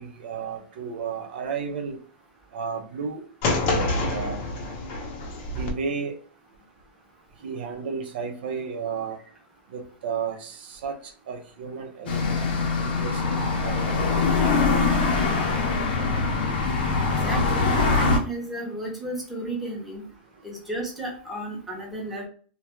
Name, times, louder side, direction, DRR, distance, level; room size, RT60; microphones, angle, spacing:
voice 1, 0.0-2.0 2.5-4.5 5.5-6.2 7.4-9.2 9.7-11.0 11.3-12.4 13.0-14.0, right 5 dB, 75° right, 3 dB, 0.5 m, -33 dB
sound 1, 3.4-5.7, left 2 dB, 40° left, 0.6 m, -27 dB
sound 2, 12.1-18.2, left 4 dB, 80° left, 0.6 m, -23 dB
voice 2, 17.2-20.0 20.4-22.3, right 2 dB, ahead, -3 dB, 0.7 m, -32 dB
2.3 x 2.2 x 2.9 m, 0.43 s
supercardioid pair, 155°, 5 cm